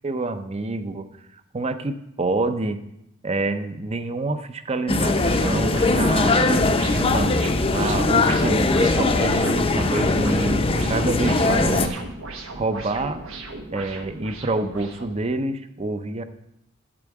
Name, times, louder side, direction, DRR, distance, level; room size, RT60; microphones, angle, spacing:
voice 1, 0.0-1.1 1.5-2.8 3.2-7.3 7.7-10.6 10.9-12.0 12.5-13.2 13.7-16.2, right 2 dB, 30° right, 10 dB, 0.6 m, -27 dB
sound 1, 4.9-11.9, left 2 dB, 30° left, 0.6 m, -20 dB
sound 2, 5.2-15.2, right 2 dB, 90° right, 1.3 m, -36 dB
8.7 x 8.2 x 4.8 m, 0.82 s
head